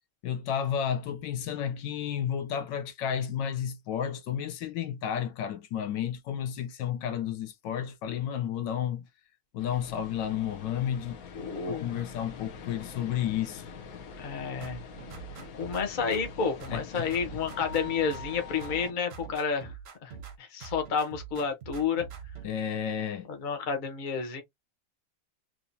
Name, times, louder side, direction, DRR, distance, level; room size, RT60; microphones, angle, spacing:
voice 1, 0.2-9.0 9.5-11.2 11.7-13.7 16.7-17.1 22.4-23.3, left 9 dB, 75° left, 1.3 m, -32 dB
sound 1, 9.6-18.9, left 5 dB, 60° left, 1.1 m, -44 dB
voice 2, 11.3-12.0 14.2-14.8 15.6-19.7 20.0-20.1 20.4-22.1 23.3-24.4, left 6 dB, 35° left, 0.8 m, -30 dB
sound 2, 14.6-16.4 16.6-18.4 18.6-20.4 20.6-22.5, right 7 dB, 55° right, 0.7 m, -44 dB
3.7 x 3.0 x 2.7 m
omnidirectional pair, 1.9 m